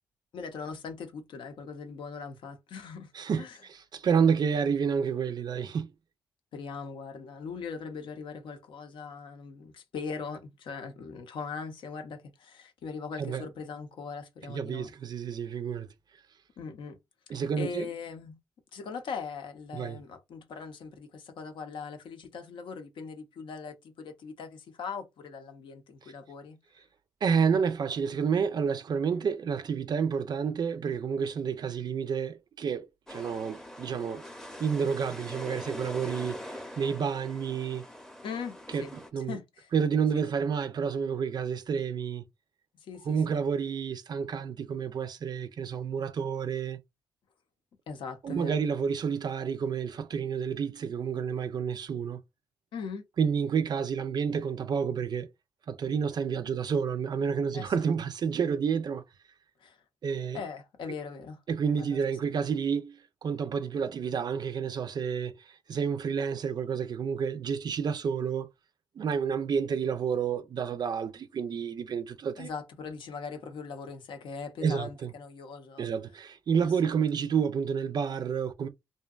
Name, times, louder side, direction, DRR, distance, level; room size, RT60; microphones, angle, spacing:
voice 1, 0.3-3.1 3.4-3.6 6.5-14.9 16.6-17.0 17.3-18.4 18.7-26.6 38.2-39.7 42.8-43.4 47.9-48.6 52.7-53.0 57.5-57.7 59.6-59.8 60.3-61.4 61.8-62.0 72.4-75.9 76.6-76.7, left 5 dB, 75° left, 0.6 m, -40 dB
voice 2, 3.7-5.9 13.2-13.4 14.5-15.9 17.3-17.9 19.7-20.0 27.2-34.3 34.6-37.8 38.7-39.4 39.7-42.2 43.1-46.8 48.2-52.2 53.2-55.3 55.7-59.0 60.0-60.4 61.5-68.5 69.0-72.5 74.6-75.1 75.8-78.7, right 6 dB, 55° right, 0.4 m, -30 dB
sound 1, 33.1-39.1, left 1 dB, 5° left, 0.6 m, -43 dB
2.6 x 2.2 x 2.3 m
supercardioid pair, 55°, 9 cm